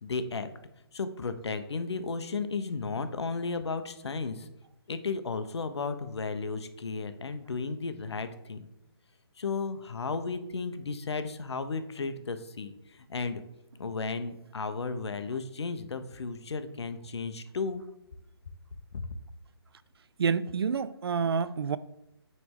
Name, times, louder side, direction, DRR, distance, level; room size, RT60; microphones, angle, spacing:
voice 1, 0.0-0.5 0.9-4.5 4.9-8.7 9.4-13.4 13.8-17.8 18.9-19.1, left 4 dB, 75° left, 0.7 m, -34 dB
voice 2, 20.2-21.8, right 6 dB, 65° right, 0.4 m, -28 dB
9.1 x 3.2 x 3.6 m
hypercardioid pair, 160°, 14 cm